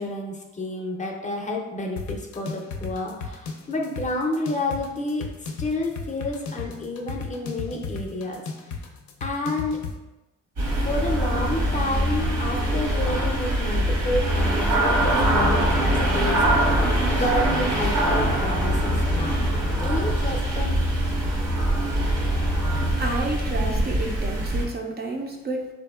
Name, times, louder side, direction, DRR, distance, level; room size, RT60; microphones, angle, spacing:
voice 1, 0.0-8.4 9.2-9.8 10.8-16.8 17.1-19.4 19.7-20.8, left 1 dB, 25° left, 0 dB, 0.5 m, -30 dB
sound 1, 2.0-10.0, left 4 dB, 75° left, 0.5 m, -35 dB
sound 2, 10.6-24.6, right 1 dB, 85° right, 1.1 m, -23 dB
voice 2, 23.0-25.7, right 2 dB, 35° right, 1 dB, 0.4 m, -30 dB
3.5 x 2.6 x 2.3 m, 1.1 s
cardioid pair, 90°, 30 cm